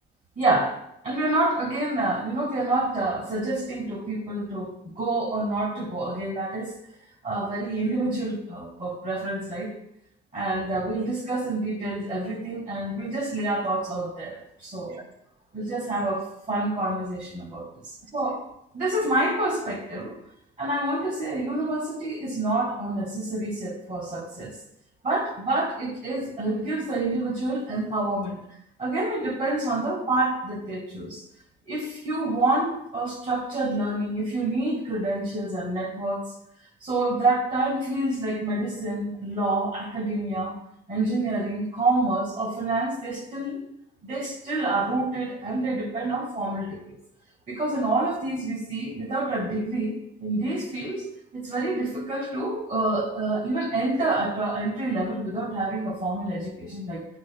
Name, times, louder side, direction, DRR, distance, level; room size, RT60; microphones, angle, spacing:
voice 1, 0.4-0.8 1.0-6.7 7.2-9.7 10.3-15.0 15.5-18.4 18.7-20.2 20.6-24.5 25.0-28.4 28.8-31.2 31.7-36.3 36.8-40.6 40.9-43.6 44.0-47.0 47.5-57.1, right 2 dB, 40° right, 0 dB, 2.5 m, -27 dB
9.8 x 6.8 x 2.4 m, 0.80 s
cardioid pair, 90°, 20 cm